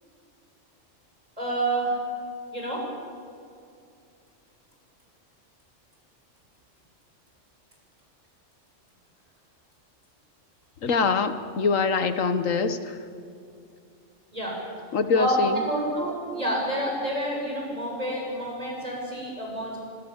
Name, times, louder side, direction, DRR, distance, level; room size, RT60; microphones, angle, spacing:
voice 1, 1.4-2.0 2.5-2.9 14.3-14.6 15.2-19.8, right 1 dB, 30° right, -2 dB, 7.3 m, -28 dB
voice 2, 10.8-13.0 14.9-15.6, left 5 dB, 90° left, 10 dB, 1.6 m, -24 dB
25.0 x 23.0 x 7.3 m, 2.5 s
omnidirectional pair, 1.3 m